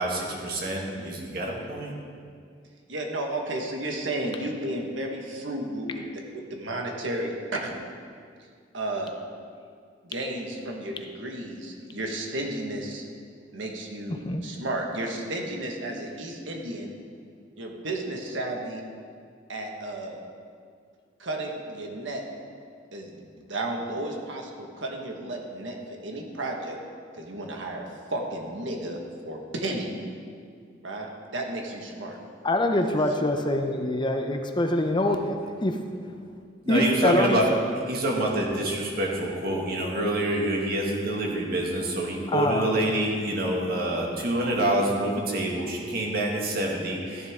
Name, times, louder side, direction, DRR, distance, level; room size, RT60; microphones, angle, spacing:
voice 1, 0.0-1.9 36.7-37.5 37.9-47.3, right 1 dB, 55° right, -2 dB, 2.0 m, -27 dB
voice 2, 2.9-6.0 6.3-7.7 8.7-9.1 10.0-13.0 13.5-16.9 17.6-18.8 19.5-20.2 21.2-22.2 22.9-26.8 27.1-30.0 30.8-32.2 33.2-33.3, right 1 dB, 80° right, 1 dB, 1.6 m, -33 dB
voice 3, 14.1-14.5 32.4-35.8 36.7-37.4 42.3-42.8, left 1 dB, 25° left, 5 dB, 0.7 m, -24 dB
14.0 x 11.0 x 3.7 m, 2.2 s
head